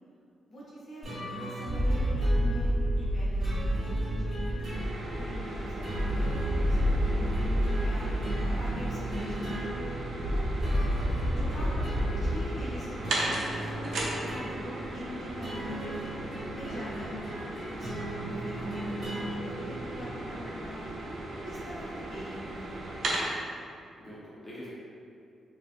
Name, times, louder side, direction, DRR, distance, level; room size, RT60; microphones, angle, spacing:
voice 1, 0.5-4.6 5.2-9.7 10.3-10.5 11.3-11.8 12.1-16.1 16.5-17.2 17.7-20.8 21.4-23.1, equal, 50° left, -8 dB, 0.8 m, -43 dB
sound 1, 1.0-20.2, right 2 dB, 45° right, 1.1 m, -39 dB
sound 2, 1.7-12.4, equal, 80° left, 0.5 m, -29 dB
sound 3, 4.7-23.3, right 1 dB, 65° right, 0.4 m, -37 dB
voice 2, 24.0-24.7, equal, 20° left, -9 dB, 0.5 m, -46 dB
2.4 x 2.3 x 2.3 m, 2.5 s
cardioid pair, 130°, 0 cm